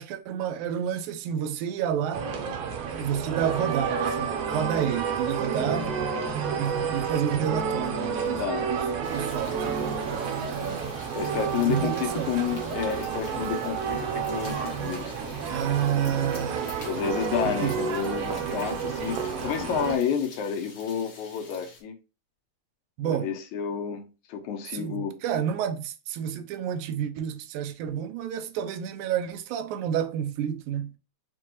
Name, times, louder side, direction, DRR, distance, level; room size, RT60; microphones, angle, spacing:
voice 1, 0.0-2.3 3.0-5.9 6.6-10.2 11.7-12.3 15.5-17.1 17.4-17.8 23.0-23.3 24.7-30.9, right 9 dB, 90° right, 2.0 m, -30 dB
sound 1, 2.1-20.0, right 6 dB, 70° right, 1.5 m, -30 dB
voice 2, 5.5-5.9 8.4-8.6 11.1-15.4 16.9-21.9 23.0-25.1, left 8 dB, 80° left, 2.1 m, -30 dB
sound 2, 9.0-21.8, left 4 dB, 60° left, 1.1 m, -48 dB
5.9 x 2.2 x 3.0 m
omnidirectional pair, 3.4 m